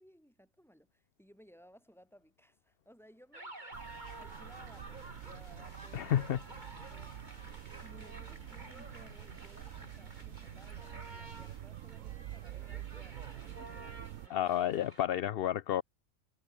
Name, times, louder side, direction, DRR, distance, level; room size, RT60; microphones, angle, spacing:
voice 1, 0.0-3.9 4.2-6.3 6.9-7.4 7.7-14.7, equal, ahead, 6.5 m, -61 dB
sound 1, 3.3-15.1, right 1 dB, 35° right, 4.5 m, -51 dB
sound 2, 3.7-14.3, right 13 dB, 80° right, 1.0 m, -47 dB
sound 3, 4.1-11.8, left 2 dB, 80° left, 5.5 m, -58 dB
voice 2, 5.9-6.4 14.3-15.8, left 11 dB, 55° left, 0.7 m, -31 dB
omnidirectional pair, 1.4 m